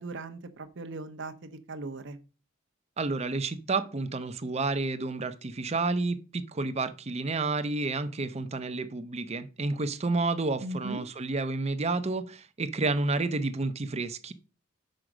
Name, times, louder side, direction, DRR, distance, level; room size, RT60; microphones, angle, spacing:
voice 1, 0.0-2.2 10.6-11.0, right 2 dB, 60° right, 0.8 m, -38 dB
voice 2, 3.0-14.3, right 3 dB, 30° right, 0.6 m, -30 dB
6.4 x 5.0 x 6.0 m
head